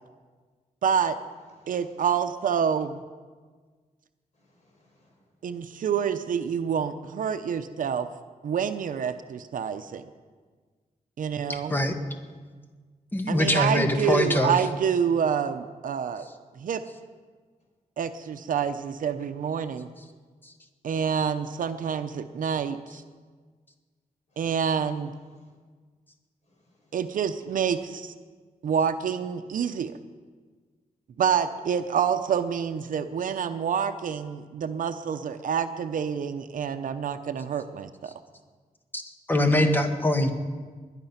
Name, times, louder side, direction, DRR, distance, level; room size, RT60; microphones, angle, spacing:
voice 1, 0.8-1.2 1.7-3.0 5.4-8.1 8.4-10.0 11.2-11.8 13.3-16.3 16.6-16.8 18.0-19.9 20.8-23.0 24.4-25.1 26.9-28.1 28.6-29.9 31.2-38.1 39.4-39.5, right 7 dB, 75° right, 9 dB, 0.7 m, -27 dB
voice 2, 1.6-2.1 4.3-5.2 21.5-21.7 24.3-24.4 25.3-25.5 26.5-26.9, left 1 dB, 55° left, -2 dB, 5.7 m, -64 dB
voice 3, 11.5-12.0 13.1-14.6 20.4-20.5 38.9-39.0 39.3-40.3, left 1 dB, 15° left, 6 dB, 1.3 m, -23 dB
21.0 x 10.5 x 5.8 m, 1.5 s
wide cardioid pair, 150°, 14 cm